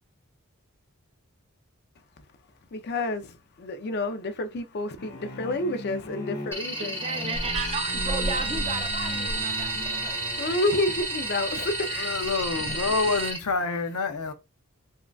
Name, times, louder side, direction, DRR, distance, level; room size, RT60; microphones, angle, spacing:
voice 1, 2.7-3.2 3.6-7.0 10.4-12.1 12.5-12.9, left 2 dB, 50° left, 0.5 m, -29 dB
sound 1, 5.0-10.8, left 1 dB, 65° left, 1.1 m, -39 dB
sound 2, 6.5-13.4, equal, 10° left, 1.0 m, -34 dB
voice 2, 6.8-10.2, right 4 dB, 25° right, 0.4 m, -34 dB
sound 3, 7.3-13.3, right 3 dB, 60° right, 1.0 m, -32 dB
voice 3, 12.0-14.3, left 4 dB, 90° left, 0.6 m, -27 dB
3.6 x 2.2 x 2.3 m
head